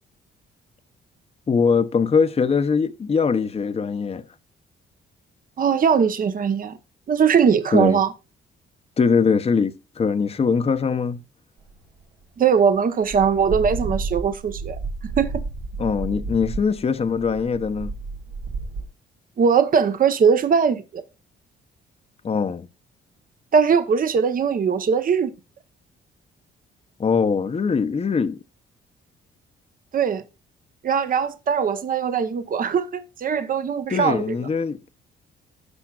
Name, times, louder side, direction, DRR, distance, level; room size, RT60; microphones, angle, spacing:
voice 1, 1.5-4.2 7.7-8.0 9.0-11.2 15.8-17.9 22.2-22.7 27.0-28.4 33.9-34.8, left 5 dB, 30° left, 0.7 m, -22 dB
voice 2, 5.6-6.8 7.1-8.1 12.4-14.8 15.2-15.4 19.4-21.0 23.5-25.3 29.9-30.2 30.8-34.4, right 6 dB, 45° right, 0.9 m, -20 dB
sound 1, 11.6-12.0 12.7-12.8 13.1-18.9, right 3 dB, 85° right, 1.9 m, -31 dB
16.0 x 5.6 x 2.4 m
cardioid pair, 90°, 20 cm